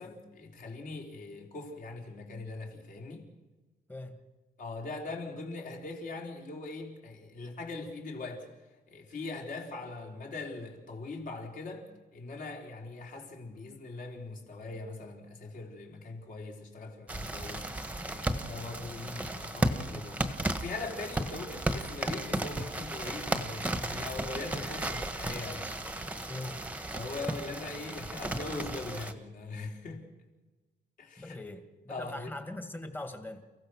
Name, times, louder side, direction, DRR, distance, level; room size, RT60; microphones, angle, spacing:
voice 1, 0.0-3.3 4.6-8.5 8.9-11.9 12.1-20.2 20.5-25.7 26.9-30.0 31.0-31.4 31.9-32.3, left 3 dB, 50° left, 4.0 m, -41 dB
voice 2, 3.9-4.3 26.3-26.6 31.2-33.4, left 2 dB, 10° left, 1.9 m, -41 dB
sound 1, 17.1-29.1, right 1 dB, 10° right, 1.4 m, -34 dB
29.5 x 16.0 x 6.4 m
cardioid pair, 155°, 19 cm